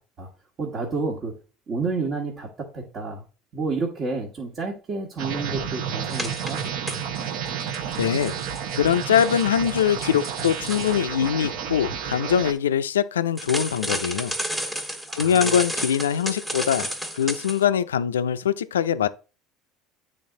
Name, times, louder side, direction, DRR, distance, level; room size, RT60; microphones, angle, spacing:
voice 1, 0.6-1.4 1.7-3.2 3.5-6.6 15.1-15.5, right 3 dB, 40° right, 1.4 m, -30 dB
sound 1, 5.2-12.5, right 7 dB, 65° right, 0.9 m, -31 dB
sound 2, 6.1-7.3 7.6-11.0 13.4-17.6, equal, 10° right, 1.4 m, -32 dB
voice 2, 8.0-8.4 8.7-14.3 15.1-16.9 17.1-19.1, left 9 dB, 85° left, 0.4 m, -22 dB
8.6 x 3.5 x 3.7 m
hypercardioid pair, 75°, 0 cm